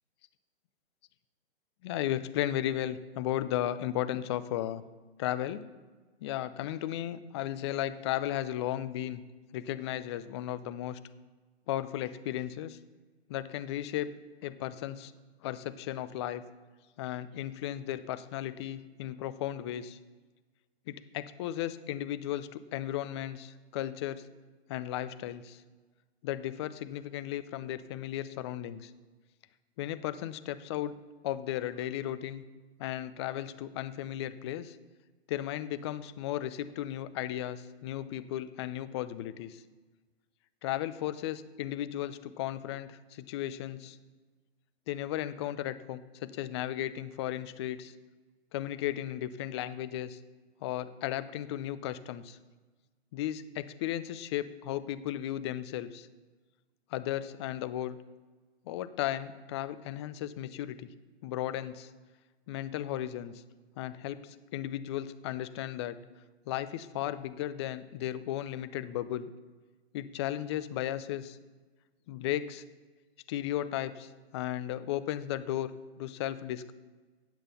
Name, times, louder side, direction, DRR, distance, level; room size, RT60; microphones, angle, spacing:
voice 1, 1.8-4.8 5.2-5.6 6.2-9.2 9.5-11.0 11.7-12.8 13.3-14.1 14.4-15.1 15.4-16.4 17.0-20.0 20.9-24.3 24.7-25.6 26.2-28.9 29.8-30.9 31.2-32.4 32.8-34.8 35.3-39.6 40.6-44.0 44.9-47.9 48.5-50.2 50.6-52.4 53.1-56.1 56.9-58.0 58.7-60.8 61.2-61.9 62.5-63.3 63.8-66.0 66.5-69.3 69.9-71.4 72.1-72.6 73.3-76.7, left 12 dB, 25° left, 13 dB, 0.4 m, -35 dB
8.9 x 7.5 x 6.8 m, 1.3 s
hypercardioid pair, 135°, 33 cm